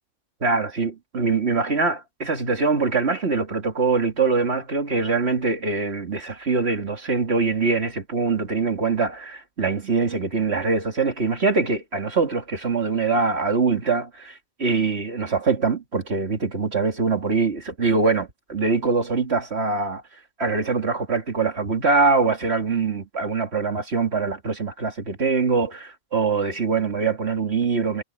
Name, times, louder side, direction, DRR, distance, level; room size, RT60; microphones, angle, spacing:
voice 1, 0.4-20.0 20.4-28.0, right 4 dB, 25° right, 1.7 m, -23 dB
omnidirectional pair, 3.8 m